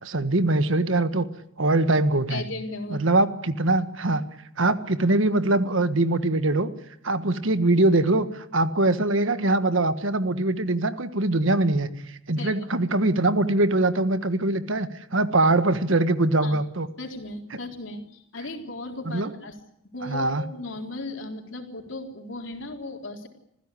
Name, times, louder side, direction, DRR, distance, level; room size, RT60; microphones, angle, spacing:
voice 1, 0.0-1.3 1.6-2.5 2.9-4.2 4.6-6.7 7.0-16.9 19.0-19.3 20.0-20.4, right 2 dB, 70° right, 11 dB, 1.5 m, -22 dB
voice 2, 2.3-3.0 12.4-12.7 16.4-16.5 17.0-19.5 19.9-23.3, left 2 dB, 65° left, 3 dB, 3.9 m, -36 dB
27.0 x 15.5 x 10.0 m, 0.80 s
head